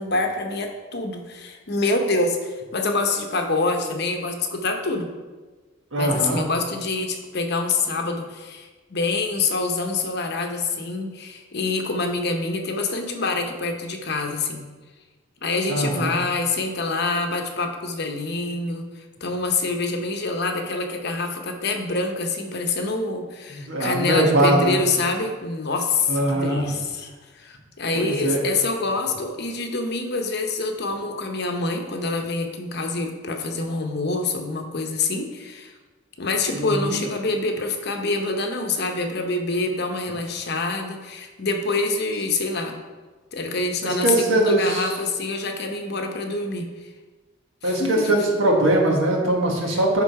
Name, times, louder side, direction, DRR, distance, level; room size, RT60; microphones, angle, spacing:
voice 1, 0.0-5.1 6.0-14.7 15.4-18.9 19.2-35.7 36.2-42.7 43.3-46.7 47.6-48.1 49.7-49.8, left 3 dB, 50° left, 4 dB, 0.9 m, -26 dB
voice 2, 5.9-6.4 15.7-16.2 23.5-24.8 26.1-26.6 27.9-28.5 36.5-37.0 43.8-44.9 47.6-50.0, right 1 dB, 65° right, -1 dB, 1.6 m, -21 dB
11.0 x 3.8 x 4.8 m, 1.3 s
head